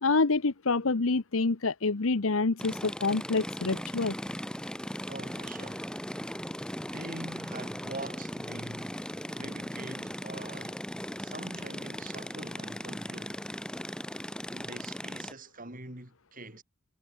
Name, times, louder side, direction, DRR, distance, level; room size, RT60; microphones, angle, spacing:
voice 1, 0.0-4.1, left 3 dB, 75° left, 1.0 m, -27 dB
sound 1, 2.6-15.3, equal, 5° left, 5.1 m, -38 dB
voice 2, 5.1-5.9 6.8-9.0 9.3-10.9 11.2-13.5 14.5-16.6, right 2 dB, 40° right, 7.3 m, -44 dB
head